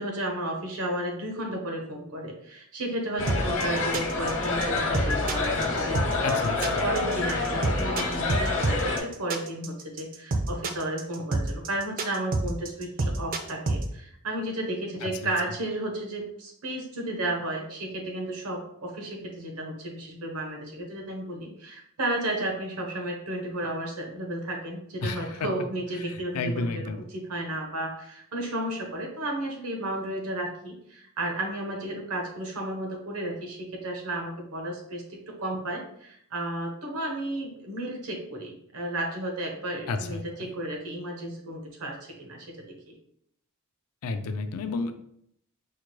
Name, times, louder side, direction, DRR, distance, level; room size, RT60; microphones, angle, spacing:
voice 1, 0.0-6.4 6.8-42.9, right 1 dB, 80° right, 1 dB, 0.9 m, -33 dB
sound 1, 3.2-9.0, left 3 dB, 60° left, 0.9 m, -28 dB
sound 2, 3.3-13.8, right 2 dB, 40° right, 0.4 m, -28 dB
voice 2, 6.2-6.8 15.0-15.3 25.0-25.3 26.0-27.0 39.9-40.5 44.0-44.9, left 3 dB, 80° left, 8 dB, 0.4 m, -31 dB
4.7 x 2.2 x 3.1 m, 0.70 s
head